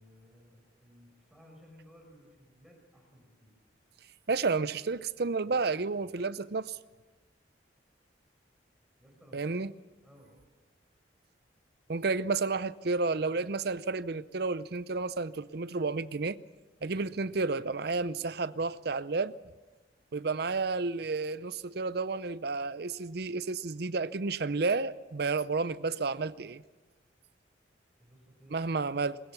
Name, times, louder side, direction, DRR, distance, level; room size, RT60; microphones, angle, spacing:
voice 1, 0.0-3.5 9.0-9.5 10.0-10.4 28.0-28.7, equal, 5° right, 5.1 m, -57 dB
voice 2, 4.3-6.8 9.3-9.7 11.9-16.4 16.8-19.3 20.1-26.6 28.5-29.2, right 4 dB, 60° right, 0.6 m, -31 dB
21.0 x 20.5 x 7.1 m
head